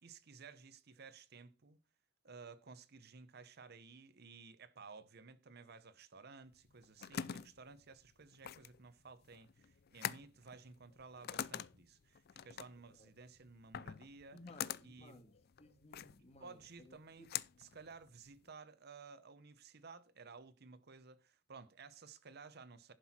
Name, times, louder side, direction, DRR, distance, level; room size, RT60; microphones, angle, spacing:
voice 1, 0.0-1.8 2.2-14.4 14.8-15.2 16.4-17.3 17.6-22.9, right 4 dB, 55° right, 0.8 m, -56 dB
sound 1, 6.6-18.5, left 9 dB, 50° left, 0.5 m, -46 dB
voice 2, 14.3-17.3, left 2 dB, 30° left, 1.9 m, -59 dB
11.5 x 6.0 x 4.3 m
head